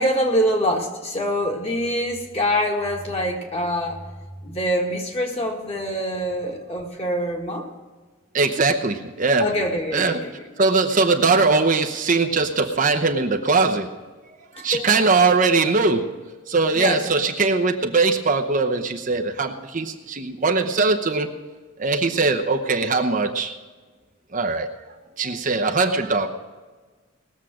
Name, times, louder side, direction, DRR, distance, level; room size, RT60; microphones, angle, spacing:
voice 1, 0.0-4.0 4.4-7.7 9.4-10.5 14.7-14.9 16.7-17.2, equal, 30° left, 0 dB, 2.0 m, -25 dB
voice 2, 8.3-9.5 9.9-10.2 10.6-13.9 14.5-16.1 16.5-21.3 21.8-23.5 24.3-24.7 25.2-26.3, right 3 dB, 40° right, 4 dB, 0.8 m, -20 dB
19.5 x 7.4 x 6.3 m, 1.4 s
head